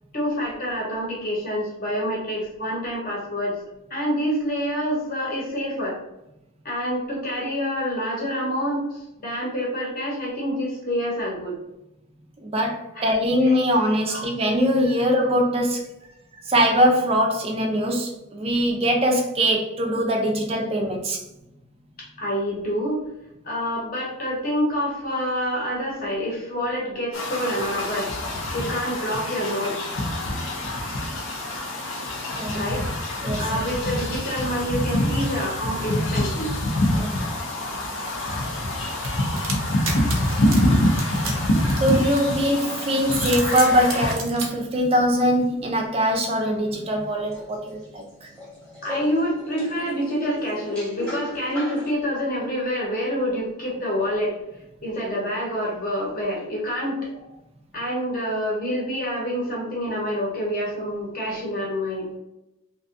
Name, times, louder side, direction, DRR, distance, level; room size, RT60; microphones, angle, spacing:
voice 1, 0.1-3.6 3.9-6.0 6.6-11.6 12.9-13.1 13.4-13.6 14.1-14.3 22.2-23.0 23.4-28.1 28.5-29.9 32.5-32.9 33.4-36.5 48.8-54.4 54.8-57.2 57.7-62.2, equal, 45° left, -3 dB, 0.9 m, -27 dB
voice 2, 12.4-15.8 16.4-21.2 32.4-32.6 33.2-33.5 36.9-37.2 41.8-48.3, equal, 30° right, 2 dB, 0.4 m, -22 dB
sound 1, 27.1-44.1, left 1 dB, 65° left, 0.5 m, -25 dB
sound 2, 39.0-42.5 43.0-44.5, right 4 dB, 80° right, 0.6 m, -32 dB
sound 3, 40.4-51.9, left 2 dB, 5° left, 0.8 m, -41 dB
2.5 x 2.3 x 2.5 m, 0.91 s
head